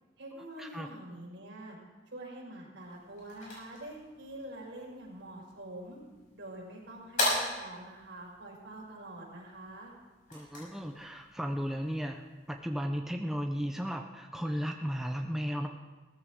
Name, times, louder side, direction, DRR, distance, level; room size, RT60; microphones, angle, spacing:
voice 1, 0.2-1.8 2.1-6.0 6.3-9.9, right 1 dB, 75° right, -3 dB, 5.1 m, -46 dB
sound 1, 2.8-12.6, left 1 dB, 45° left, 6.0 m, -40 dB
voice 2, 10.3-15.7, equal, ahead, 3 dB, 0.6 m, -35 dB
17.5 x 14.5 x 3.7 m, 1.2 s
head